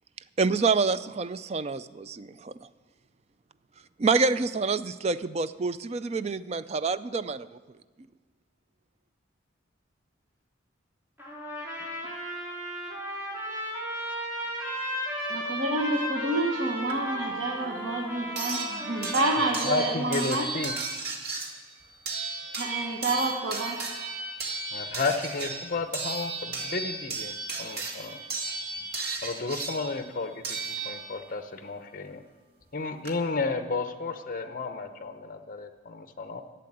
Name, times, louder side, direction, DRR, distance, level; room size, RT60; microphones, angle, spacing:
voice 1, 0.4-2.5 4.0-7.5, right 4 dB, 35° right, 14 dB, 0.3 m, -27 dB
Trumpet, 11.2-19.8, equal, 10° right, 4.3 m, -35 dB
voice 2, 15.3-20.5 22.6-23.8, right 2 dB, 80° right, 0 dB, 1.3 m, -29 dB
sound 1, 16.9-17.0 18.4-31.4 32.6-32.7 33.0-33.1, right 3 dB, 55° right, 1.8 m, -35 dB
voice 3, 19.4-20.7 24.7-28.2 29.2-32.2 32.7-36.4, left 3 dB, 45° left, 8 dB, 0.8 m, -32 dB
11.5 x 7.7 x 9.7 m, 1.4 s
head